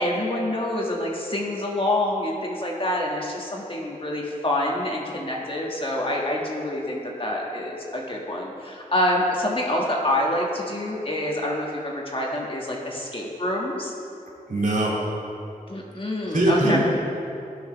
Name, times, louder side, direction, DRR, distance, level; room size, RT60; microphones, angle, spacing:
voice 1, 0.0-13.9 15.7-16.8, left 1 dB, 35° left, -2 dB, 1.9 m, -26 dB
voice 2, 14.5-15.0 16.3-16.8, right 1 dB, 60° right, -4 dB, 2.6 m, -21 dB
17.5 x 6.3 x 3.4 m, 2.6 s
cardioid pair, 50°, 15 cm